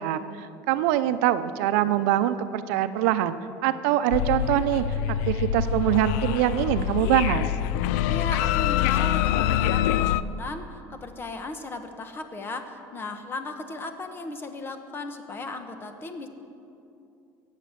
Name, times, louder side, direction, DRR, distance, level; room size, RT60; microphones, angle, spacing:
voice 1, 0.0-3.3 3.6-4.9 5.3-7.5, right 12 dB, 85° right, 11 dB, 0.6 m, -24 dB
sound 1, 4.1-10.2, left 11 dB, 85° left, 0.4 m, -25 dB
voice 2, 8.1-16.3, left 3 dB, 30° left, 7 dB, 1.2 m, -36 dB
17.5 x 7.4 x 7.5 m, 2.7 s
cardioid pair, 125°, 8 cm